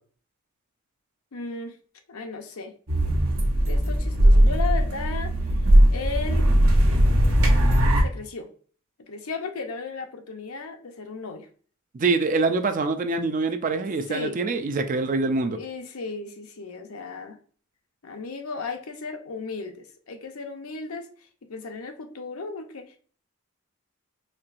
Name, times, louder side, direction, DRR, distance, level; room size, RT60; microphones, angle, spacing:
voice 1, 1.3-1.8 2.1-2.7 3.7-5.3 5.9-6.5 8.0-8.5 9.1-11.5 14.1-14.4 15.5-17.4 18.0-23.0, left 4 dB, 80° left, 0.7 m, -35 dB
sound 1, 2.9-8.0, equal, 75° right, 0.9 m, -19 dB
voice 2, 11.9-15.6, right 3 dB, 35° right, 0.4 m, -24 dB
4.4 x 3.1 x 2.5 m
head